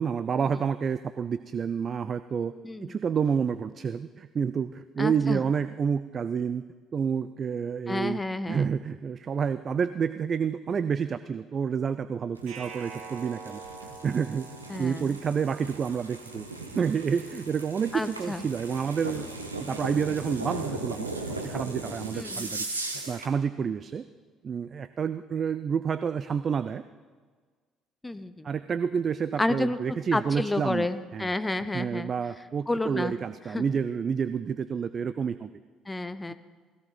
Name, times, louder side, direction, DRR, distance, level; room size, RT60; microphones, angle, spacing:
voice 1, 0.0-2.5 2.8-6.6 6.9-8.2 8.5-14.5 14.8-16.5 16.7-19.3 19.6-21.1 21.4-22.7 22.9-24.1 24.4-26.8 28.4-30.9 31.1-31.3 31.7-35.5 36.3-36.4, right 6 dB, 40° right, 13 dB, 0.4 m, -29 dB
voice 2, 2.6-3.0 5.0-5.4 7.9-8.7 14.7-15.2 17.9-18.4 22.1-22.5 28.0-28.5 29.4-29.8 30.1-32.1 32.7-33.1 33.5-33.6 35.9-36.3, left 2 dB, 15° left, 12 dB, 0.9 m, -30 dB
sound 1, 12.4-23.3, right 2 dB, 85° right, 1.0 m, -38 dB
sound 2, 12.5-15.5, right 5 dB, 55° right, 2.7 m, -44 dB
17.5 x 17.0 x 4.0 m, 1.5 s
figure-of-eight pair, 50°, 0 cm